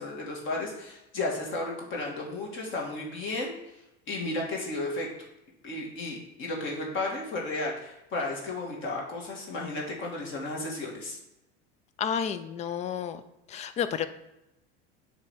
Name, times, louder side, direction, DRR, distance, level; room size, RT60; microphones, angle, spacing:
voice 1, 0.0-3.5 4.1-5.1 5.6-11.2, left 2 dB, 40° left, -2 dB, 1.8 m, -33 dB
voice 2, 12.0-13.2 13.5-14.1, left 8 dB, 25° left, 11 dB, 0.3 m, -31 dB
7.2 x 3.3 x 5.5 m, 0.89 s
cardioid pair, 150°, 30 cm